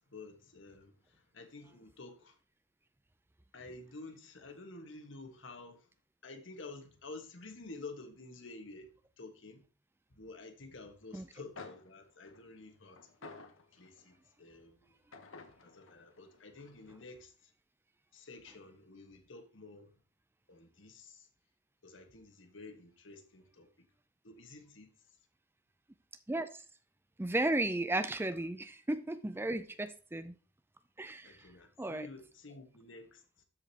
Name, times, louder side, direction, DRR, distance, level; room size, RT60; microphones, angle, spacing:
voice 1, 0.0-2.3 3.5-5.8 6.2-9.6 10.1-13.0 13.7-14.9 15.6-17.3 18.1-19.9 20.5-21.3 21.8-23.7 24.2-24.9 31.2-33.4, left 3 dB, 70° left, 1.5 m, -50 dB
sound 1, 11.2-11.3 11.6-14.2 15.1-17.1, left 3 dB, 90° left, 1.1 m, -53 dB
voice 2, 26.3-26.6 27.2-30.3 31.0-31.4 31.8-32.1, right 2 dB, 10° right, 0.4 m, -34 dB
13.0 x 5.2 x 2.9 m
head